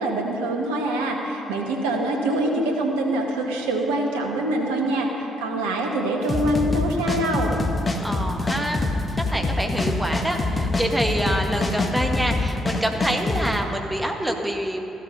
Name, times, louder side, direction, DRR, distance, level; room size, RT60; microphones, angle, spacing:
voice 1, 0.0-7.5, right 1 dB, 75° right, 1 dB, 1.7 m, -24 dB
sound 1, 6.3-13.6, left 2 dB, 30° left, 1.6 m, -25 dB
voice 2, 8.0-14.8, right 1 dB, 10° right, 2 dB, 1.7 m, -26 dB
15.0 x 12.5 x 5.4 m, 2.9 s
figure-of-eight pair, 45°, 0 cm